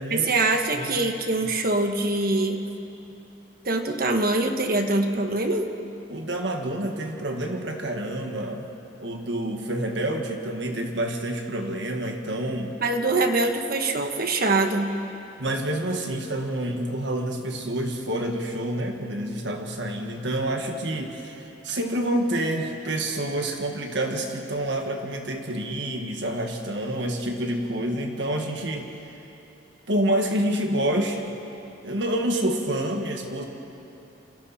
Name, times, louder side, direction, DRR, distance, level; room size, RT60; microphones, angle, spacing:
voice 1, 0.1-2.7 3.6-5.7 12.8-15.0, right 2 dB, 50° right, 5 dB, 1.5 m, -24 dB
voice 2, 0.8-1.1 6.1-8.7 9.0-12.7 15.4-28.9 29.9-31.3 31.8-33.5, right 1 dB, 65° right, 3 dB, 1.8 m, -28 dB
28.5 x 27.5 x 4.3 m, 2.9 s
head